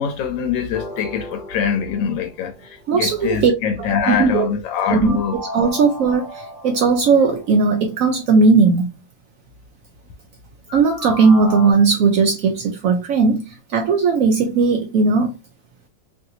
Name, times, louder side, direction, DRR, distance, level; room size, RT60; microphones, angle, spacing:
voice 1, 0.0-5.4, left 7 dB, 80° left, 1.3 m, -23 dB
sound 1, 0.7-2.8 5.0-7.7 10.7-11.7, equal, 40° left, 0.7 m, -35 dB
voice 2, 2.9-3.5 3.8-4.5 4.9-8.9 10.7-13.4 13.7-15.3, right 4 dB, 85° right, 0.7 m, -17 dB
3.1 x 2.6 x 2.7 m
omnidirectional pair, 2.0 m